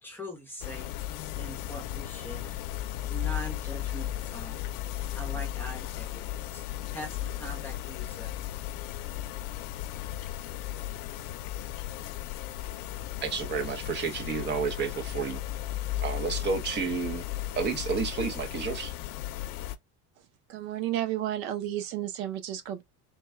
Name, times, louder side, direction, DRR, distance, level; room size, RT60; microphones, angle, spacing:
voice 1, 0.0-0.9 1.4-2.5 3.1-4.6 5.1-8.3, equal, 5° left, 0.8 m, -42 dB
sound 1, 0.6-19.8, left 13 dB, 65° left, 0.6 m, -35 dB
voice 2, 13.2-15.4 16.0-17.2 17.5-18.9, right 5 dB, 30° right, 0.7 m, -31 dB
voice 3, 20.5-22.8, right 12 dB, 85° right, 0.8 m, -32 dB
3.5 x 2.2 x 4.2 m
cardioid pair, 160°, 34 cm